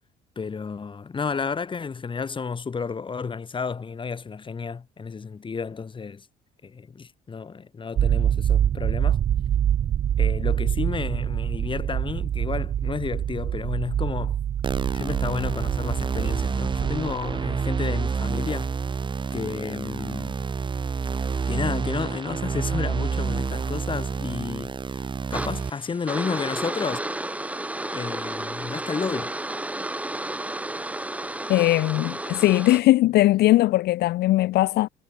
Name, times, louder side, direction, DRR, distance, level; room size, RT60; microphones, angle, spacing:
voice 1, 0.3-6.3 6.6-9.2 10.2-14.4 14.9-18.7 19.3-20.3 21.5-27.0 27.9-29.3, left 5 dB, 30° left, 3.3 m, -31 dB
sound 1, 8.0-17.8, right 10 dB, 55° right, 3.7 m, -25 dB
sound 2, 14.6-25.7, right 5 dB, 30° right, 1.5 m, -28 dB
sound 3, 25.3-32.8, right 1 dB, 10° right, 4.4 m, -32 dB
voice 2, 31.5-34.9, left 16 dB, 75° left, 0.8 m, -19 dB
cardioid pair, 110°, 17 cm